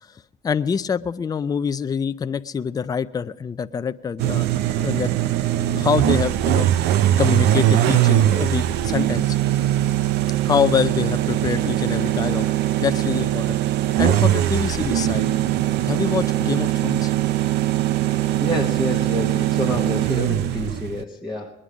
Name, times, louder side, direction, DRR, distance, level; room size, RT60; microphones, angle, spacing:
voice 1, 0.4-5.1 5.7-6.9 7.2-9.4 10.4-12.5 12.8-13.6 14.0-15.3 15.9-17.1, left 6 dB, 20° left, 12 dB, 0.4 m, -25 dB
sound 1, 4.2-21.0, right 13 dB, 85° right, 0.6 m, -21 dB
voice 2, 18.4-21.5, left 1 dB, 5° right, 1 dB, 1.1 m, -28 dB
21.0 x 10.0 x 5.0 m, 0.96 s
cardioid pair, 110°, 17 cm